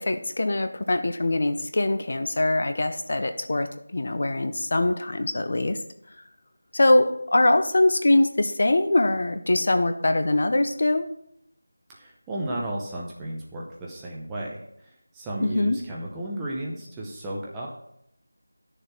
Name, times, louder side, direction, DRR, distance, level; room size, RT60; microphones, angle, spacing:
voice 1, 0.0-5.8 6.7-11.1 15.4-15.8, left 2 dB, 40° left, 9 dB, 0.8 m, -23 dB
voice 2, 11.9-17.7, right 1 dB, 5° right, -4 dB, 0.7 m, -34 dB
11.5 x 6.6 x 4.5 m, 0.76 s
figure-of-eight pair, 180°, 0 cm